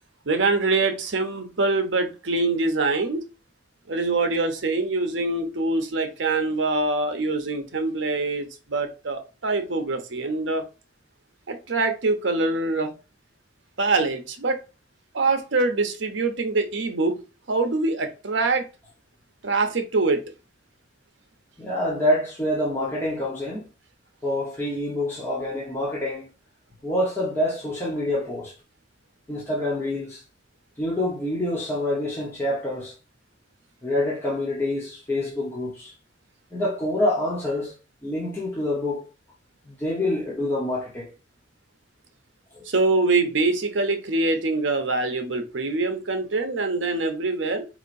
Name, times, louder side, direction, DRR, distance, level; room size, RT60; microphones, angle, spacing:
voice 1, 0.3-3.2 3.9-10.6 11.5-12.9 13.8-14.6 15.1-17.2 17.5-18.7 19.4-20.2 42.7-47.7, right 3 dB, 70° right, 0.8 m, -24 dB
voice 2, 21.6-23.7 24.2-26.3 26.8-28.5 29.3-30.2 30.8-32.9 33.8-35.9 36.5-37.7 38.0-39.1 39.7-41.1 42.5-42.6, left 1 dB, 10° left, 1.0 m, -26 dB
4.6 x 2.9 x 2.6 m
head